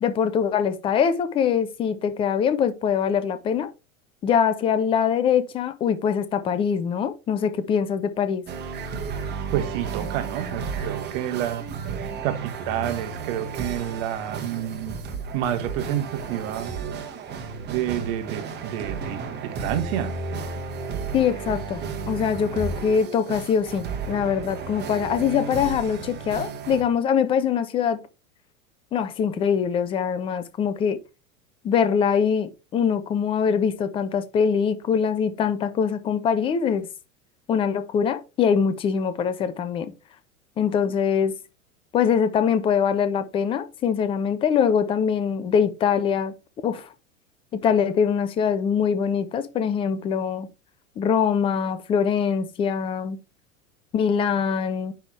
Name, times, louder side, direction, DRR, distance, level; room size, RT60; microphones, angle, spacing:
voice 1, 0.0-3.7 4.2-8.4 21.1-28.0 28.9-31.0 31.6-36.9 37.5-39.9 40.6-41.3 41.9-46.3 46.6-46.9 47.5-50.5 51.0-53.2 53.9-54.9, left 7 dB, 15° left, 0.4 m, -23 dB
sound 1, 8.5-26.8, right 5 dB, 25° right, 1.4 m, -33 dB
voice 2, 9.5-11.7 12.2-14.9 15.3-16.7 17.7-20.1, right 11 dB, 45° right, 1.2 m, -29 dB
9.7 x 3.5 x 3.2 m
figure-of-eight pair, 85°, 41 cm